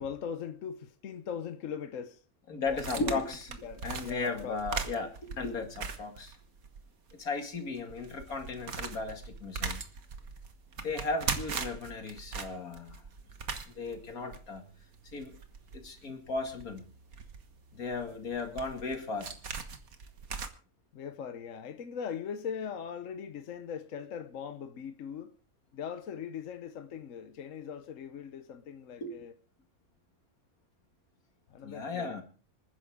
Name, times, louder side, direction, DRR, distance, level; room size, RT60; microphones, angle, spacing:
voice 1, 0.0-2.2 2.7-3.1 3.6-4.6 10.8-10.9 20.9-25.3 25.7-29.3 31.5-32.2, left 7 dB, 65° left, 1.2 m, -40 dB
voice 2, 2.5-3.5 3.8-6.3 7.2-9.8 10.8-13.0 13.7-14.6 15.1-15.4 15.7-16.8 17.7-19.3 29.0-29.2 31.6-32.2, left 3 dB, 85° left, 2.7 m, -36 dB
sound 1, 2.7-6.8 7.1-7.2 7.7-20.5, right 5 dB, 75° right, 1.9 m, -40 dB
26.5 x 10.0 x 3.6 m
omnidirectional pair, 1.5 m